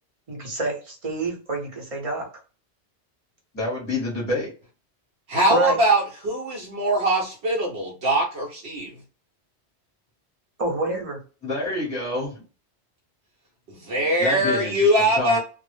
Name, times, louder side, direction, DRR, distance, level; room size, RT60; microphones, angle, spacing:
voice 1, 0.3-2.3 5.5-5.8 10.6-11.2, right 2 dB, 35° right, 0 dB, 0.7 m, -28 dB
voice 2, 3.5-4.5 11.4-12.3 14.2-14.9 15.2-15.4, left 2 dB, 20° left, -4 dB, 0.8 m, -27 dB
voice 3, 5.3-8.9 13.8-15.4, right 1 dB, 70° right, -2 dB, 0.8 m, -22 dB
2.0 x 2.0 x 3.1 m, 0.36 s
omnidirectional pair, 1.1 m